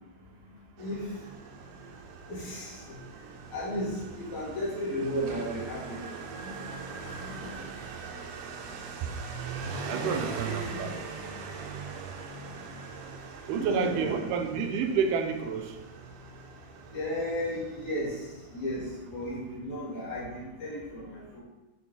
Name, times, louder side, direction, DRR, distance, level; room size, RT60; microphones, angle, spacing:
Motorcycle, 0.8-19.6, right 5 dB, 75° right, 1.7 m, -41 dB
voice 1, 2.3-2.9 3.5-6.2 6.4-6.5 7.0-7.6 10.0-10.9 13.6-14.3 16.9-18.2 18.5-21.4, equal, 70° left, -6 dB, 3.4 m, -34 dB
voice 2, 9.9-10.9 13.5-15.8 18.8-18.9, right 6 dB, 90° right, 5 dB, 2.2 m, -30 dB
7.7 x 4.6 x 4.3 m, 1.1 s
omnidirectional pair, 3.6 m